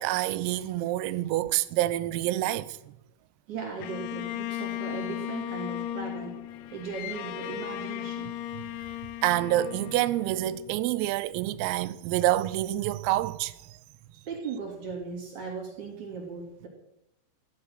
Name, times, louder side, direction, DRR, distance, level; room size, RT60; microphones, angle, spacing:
voice 1, 0.0-2.9 8.6-8.7 9.2-13.8, right 15 dB, 90° right, 3.4 m, -27 dB
voice 2, 3.5-6.4 6.7-8.3 14.3-16.7, right 5 dB, 40° right, 3.8 m, -37 dB
Bowed string instrument, 3.8-11.1, left 12 dB, 80° left, 2.9 m, -36 dB
15.0 x 12.0 x 6.6 m
omnidirectional pair, 5.9 m